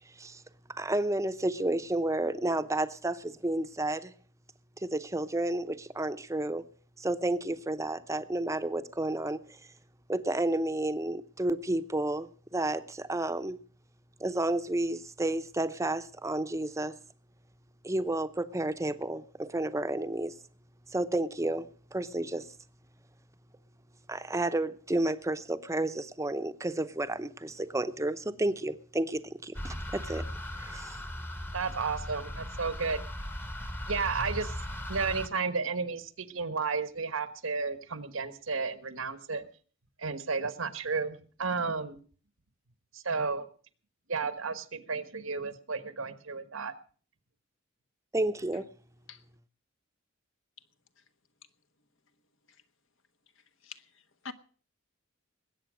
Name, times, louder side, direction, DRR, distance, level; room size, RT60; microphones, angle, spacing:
voice 1, 0.8-4.1 4.8-6.6 7.0-9.6 10.1-13.6 14.2-16.9 17.8-20.3 20.9-22.5 24.1-30.2 30.6-31.0 48.1-48.7, right 1 dB, 15° right, 11 dB, 0.8 m, -31 dB
sound 1, 29.5-35.3, left 1 dB, 10° left, 1.0 m, -38 dB
voice 2, 31.5-33.0 33.9-34.5 34.9-39.4 40.0-42.0 42.9-43.5 44.1-46.7, right 4 dB, 80° right, 12 dB, 1.3 m, -32 dB
voice 3, 53.6-54.3, left 5 dB, 70° left, 9 dB, 1.2 m, -46 dB
20.5 x 8.6 x 6.2 m, 0.42 s
head